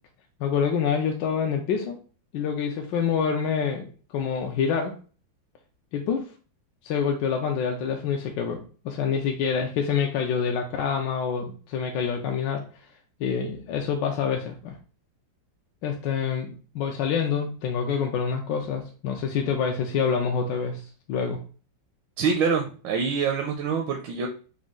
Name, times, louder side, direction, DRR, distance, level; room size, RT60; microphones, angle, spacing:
voice 1, 0.4-2.0 2.3-5.0 5.9-6.3 6.8-12.6 13.2-14.8 15.8-20.8 21.1-21.4, left 6 dB, 75° left, 2 dB, 1.2 m, -27 dB
voice 2, 22.2-24.3, right 5 dB, 80° right, 3 dB, 1.3 m, -25 dB
5.0 x 2.3 x 3.6 m, 0.38 s
omnidirectional pair, 2.1 m